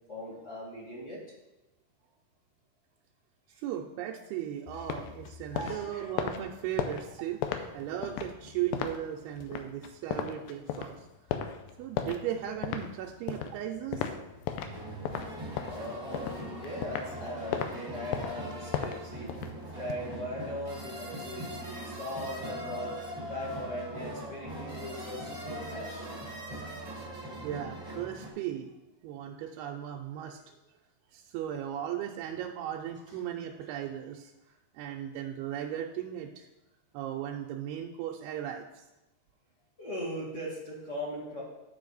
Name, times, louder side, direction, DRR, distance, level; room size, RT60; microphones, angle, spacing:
voice 1, 0.1-1.2 3.5-3.6 4.7-4.9 5.5-6.1 15.7-19.3 19.7-23.0 23.3-26.1 33.1-33.2 39.8-41.4, left 1 dB, 30° left, -6 dB, 1.3 m, -39 dB
voice 2, 3.6-7.4 7.7-11.1 11.8-14.1 14.7-15.1 27.4-28.7 29.0-30.4 31.1-34.3 34.7-36.5 36.9-38.8, right 10 dB, 85° right, 2 dB, 2.5 m, -37 dB
sound 1, 4.7-14.8 15.1-17.2 17.5-17.7 18.1-19.9, left 9 dB, 80° left, 2.2 m, -36 dB
sound 2, 14.7-28.3, right 1 dB, 30° right, 0.7 m, -41 dB
9.0 x 5.8 x 4.0 m, 0.99 s
omnidirectional pair, 4.5 m